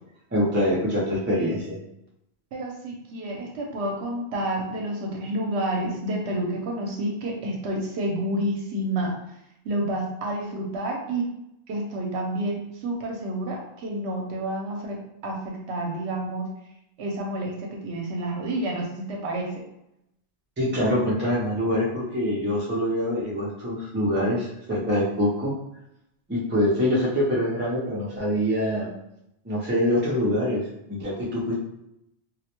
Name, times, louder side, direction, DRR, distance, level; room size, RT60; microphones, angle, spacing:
voice 1, 0.3-1.8 20.6-25.5 26.3-28.9 29.4-31.6, equal, 15° right, -6 dB, 0.5 m, -25 dB
voice 2, 2.5-9.2 9.6-11.3 11.7-16.5 17.0-19.6, right 1 dB, 75° right, 0 dB, 0.8 m, -29 dB
2.3 x 2.1 x 2.9 m, 0.82 s
omnidirectional pair, 1.2 m